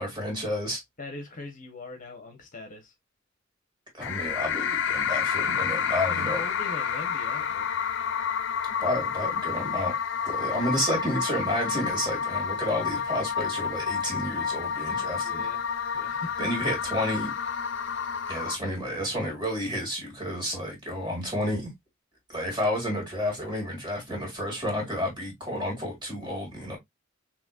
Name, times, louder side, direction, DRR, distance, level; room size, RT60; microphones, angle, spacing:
voice 1, 0.0-0.8 4.0-6.4 8.8-9.9 10.2-15.5 16.4-17.3 18.3-21.7 22.3-26.8, equal, 25° right, 2.2 m, -30 dB
voice 2, 1.0-2.9 6.0-7.7 15.2-15.7 15.9-16.5, left 2 dB, 40° left, 0.9 m, -41 dB
sound 1, 4.0-18.6, left 7 dB, 65° left, 0.5 m, -29 dB
4.0 x 3.0 x 2.3 m
head